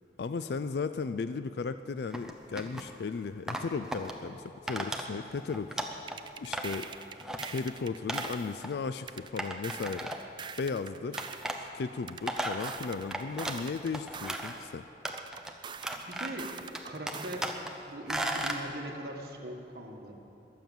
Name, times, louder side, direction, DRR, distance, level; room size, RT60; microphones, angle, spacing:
voice 1, 0.2-6.9 7.5-10.1 10.6-11.2 11.6-14.9, left 4 dB, 70° left, 11 dB, 0.4 m, -36 dB
sound 1, 2.1-2.9 3.5-4.1 4.7-5.0 5.4-6.2 6.5-6.9 7.2-7.5 8.1-8.3 8.6-8.7 9.4-10.4 11.2-11.6 12.0-13.6 13.9-14.6 15.0-15.5 15.8-16.5 16.7-17.7 18.1-18.6, right 1 dB, 5° right, 0.8 m, -35 dB
sound 2, 6.1-8.5 9.1-11.5 12.1-14.5 15.1-17.5, right 6 dB, 25° right, 0.4 m, -44 dB
voice 2, 16.1-17.5 17.9-20.1, right 1 dB, 55° right, 1 dB, 1.6 m, -41 dB
21.5 x 7.7 x 7.1 m, 2.8 s
head